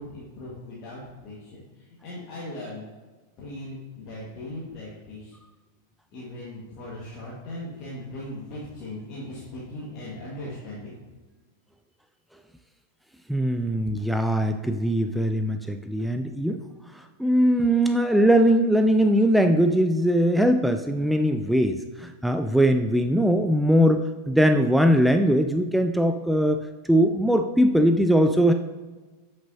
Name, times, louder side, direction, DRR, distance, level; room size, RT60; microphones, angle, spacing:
voice 1, 0.0-1.6 2.0-2.8 3.4-5.3 6.1-11.0, left 1 dB, 40° left, -6 dB, 1.5 m, -38 dB
voice 2, 13.3-16.6 17.2-28.5, equal, ahead, 6 dB, 0.3 m, -21 dB
8.0 x 6.0 x 2.7 m, 1.3 s
figure-of-eight pair, 90°, 0 cm